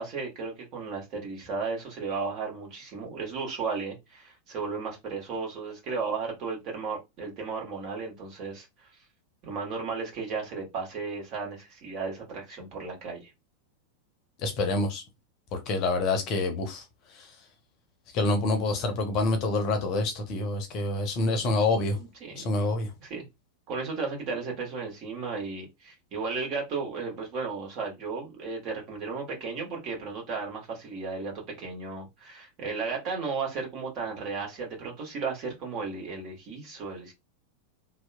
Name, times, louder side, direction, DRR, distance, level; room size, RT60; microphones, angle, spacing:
voice 1, 0.0-8.7 9.4-13.3 21.9-22.5 23.0-23.3 23.7-37.1, right 4 dB, 40° right, 1.2 m, -34 dB
voice 2, 14.4-15.0 15.5-16.8 18.1-22.0 22.4-22.9, left 2 dB, 40° left, 0.7 m, -27 dB
2.8 x 2.1 x 2.2 m
figure-of-eight pair, 90°, 0 cm